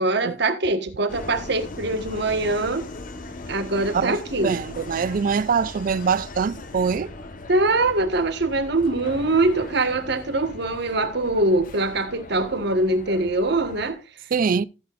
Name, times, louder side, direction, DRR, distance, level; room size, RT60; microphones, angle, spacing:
voice 1, 0.0-2.8 3.5-4.5 7.5-14.0, right 2 dB, 65° right, 1.4 m, -23 dB
Subway metro underground, 1.1-13.9, left 2 dB, 50° left, 1.1 m, -39 dB
voice 2, 4.4-7.1 14.3-14.6, right 6 dB, 50° right, 0.4 m, -23 dB
14.5 x 8.1 x 2.5 m
head